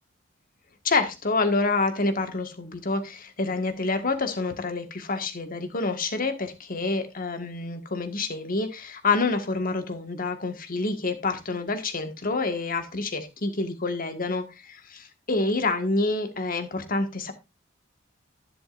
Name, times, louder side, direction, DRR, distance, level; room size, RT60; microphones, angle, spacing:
voice 1, 0.8-17.3, left 3 dB, 50° left, 1.7 m, -27 dB
11.0 x 11.0 x 2.6 m
head